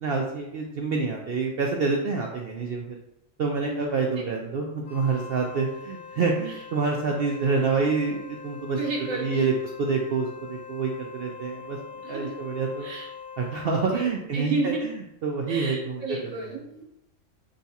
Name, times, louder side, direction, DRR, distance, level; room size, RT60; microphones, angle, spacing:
voice 1, 0.0-3.0 3.4-8.8 9.2-9.5 9.8-11.8 12.1-12.9 13.4-14.7 15.2-16.3, right 4 dB, 65° right, 0 dB, 0.6 m, -27 dB
voice 2, 3.6-4.4 6.5-6.6 8.7-9.5 12.0-12.3 12.8-13.1 13.8-14.8 15.5-16.9, right 3 dB, 85° right, -1 dB, 1.4 m, -33 dB
Wind instrument woodwind instrument, 4.8-14.1, left 6 dB, 65° left, 1.3 m, -43 dB
6.2 x 2.3 x 2.7 m, 0.81 s
omnidirectional pair, 1.4 m